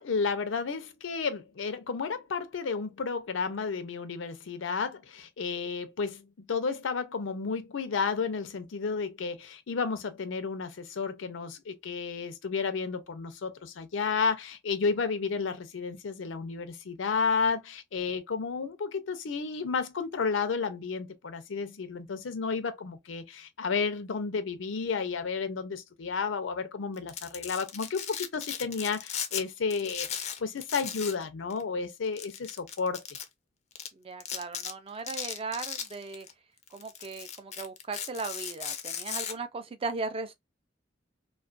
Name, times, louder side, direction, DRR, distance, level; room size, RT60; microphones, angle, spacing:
voice 1, 0.0-33.0, left 5 dB, 90° left, 0.5 m, -32 dB
Domestic sounds home sounds, 27.0-29.4 29.7-31.2 31.5-31.6 32.2-33.2 33.8-33.9 34.2-34.7 35.1-36.3 36.7-39.3, left 8 dB, 35° left, 0.4 m, -37 dB
voice 2, 33.9-36.3 36.7-40.3, right 4 dB, 30° right, 0.4 m, -37 dB
2.3 x 2.2 x 2.4 m
head